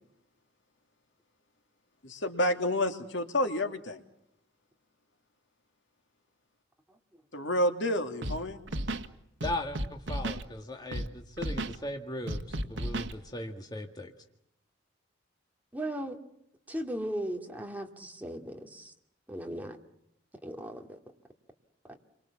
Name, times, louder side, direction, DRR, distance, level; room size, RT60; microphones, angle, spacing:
voice 1, 2.0-4.0 7.3-8.6, left 1 dB, 70° left, 6 dB, 2.7 m, -29 dB
Scratching (performance technique), 8.2-8.4 8.7-9.1 9.4-10.4 10.9-11.1 11.4-11.8 12.3-13.1, right 1 dB, 70° right, 1.9 m, -33 dB
voice 2, 9.4-14.1, left 1 dB, 20° left, 3 dB, 1.8 m, -38 dB
voice 3, 15.7-16.2 16.7-18.9 19.3-19.8 20.4-21.0, right 1 dB, 10° right, 3 dB, 2.6 m, -37 dB
29.5 x 24.5 x 7.2 m, 0.77 s
head